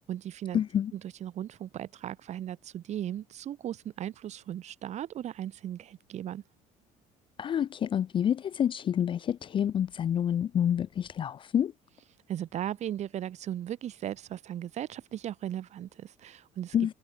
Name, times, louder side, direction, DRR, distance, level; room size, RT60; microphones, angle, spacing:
voice 1, 0.0-0.6 0.9-6.4 12.3-16.7, right 11 dB, 50° right, 1.7 m, -37 dB
voice 2, 0.5-0.9 7.4-11.7 16.7-16.9, left 9 dB, 35° left, 0.4 m, -28 dB
cardioid pair, 125°, 15 cm